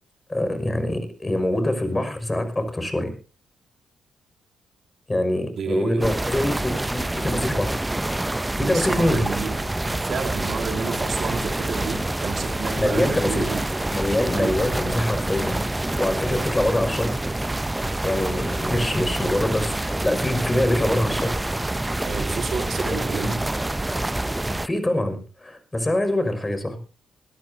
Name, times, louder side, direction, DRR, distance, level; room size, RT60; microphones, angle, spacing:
voice 1, 0.3-3.1 5.1-7.8 8.6-9.2 12.8-13.5 13.9-15.7 16.0-17.1 18.0-21.3 22.8-23.3 24.6-26.8, left 1 dB, 20° left, 8 dB, 5.7 m, -24 dB
voice 2, 5.6-6.2 8.6-13.6 14.3-14.6 22.0-23.4, right 6 dB, 60° right, 6 dB, 1.9 m, -31 dB
sound 1, 6.0-24.7, right 1 dB, 15° right, 0.6 m, -27 dB
21.5 x 14.0 x 2.8 m, 0.36 s
supercardioid pair, 60°, 0 cm